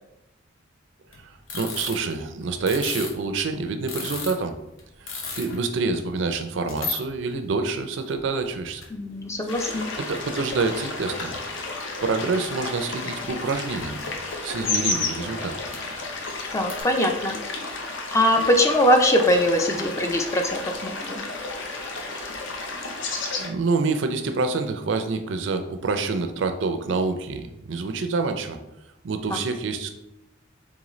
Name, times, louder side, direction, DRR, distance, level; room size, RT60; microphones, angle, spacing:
sound 1, 1.1-3.3 3.6-3.7 3.9-5.6 5.9-6.0 6.7-7.0 7.6-7.7 8.0-8.9 9.3-9.4 10.0-10.2 10.5-10.6 11.2-11.7 12.2-12.6 13.0-15.0 15.7-16.8, left 4 dB, 90° left, 0.8 m, -36 dB
voice 1, 1.2-4.6 5.0-5.1 5.3-8.8 9.6-11.4 12.0-14.0 14.4-15.7 23.4-28.6 29.0-30.0, right 4 dB, 60° right, 7 dB, 0.4 m, -27 dB
voice 2, 8.9-9.9 16.5-17.4 18.1-21.2 29.3-29.4, equal, 15° left, 3 dB, 0.4 m, -22 dB
sound 2, 9.5-23.5, left 3 dB, 60° left, 0.6 m, -32 dB
3.8 x 3.6 x 3.0 m, 0.89 s
head